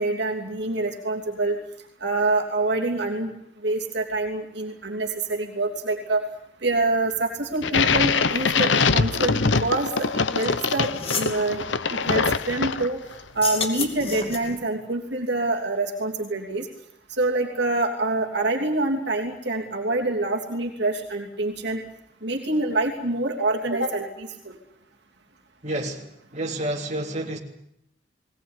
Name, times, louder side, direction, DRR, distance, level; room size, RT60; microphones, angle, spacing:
voice 1, 0.0-1.6 2.0-3.3 3.6-6.2 6.6-10.9 11.2-13.0 13.3-16.7 17.1-21.8 22.2-24.5, right 2 dB, 60° right, 3.1 m, -26 dB
sound 1, 7.6-13.1, left 5 dB, 70° left, 1.0 m, -23 dB
sound 2, 10.4-10.5 10.8-11.4 13.3-14.6, left 4 dB, 30° left, 2.8 m, -30 dB
voice 2, 25.6-26.1 26.3-27.4, right 1 dB, 40° right, 3.4 m, -29 dB
20.5 x 19.5 x 9.9 m
head